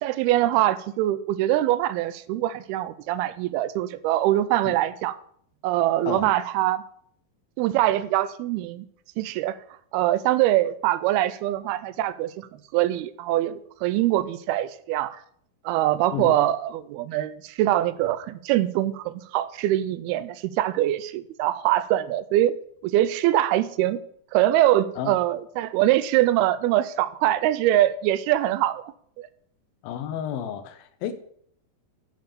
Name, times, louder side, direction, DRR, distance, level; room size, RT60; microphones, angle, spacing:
voice 1, 0.0-5.2 5.6-6.8 7.6-8.9 9.2-9.6 9.9-15.2 15.7-22.6 22.8-24.0 24.3-28.8 29.2-29.3, right 14 dB, 85° right, 2.5 m, -23 dB
voice 2, 29.8-31.1, left 9 dB, 75° left, 2.5 m, -31 dB
9.2 x 6.7 x 6.8 m
omnidirectional pair, 4.4 m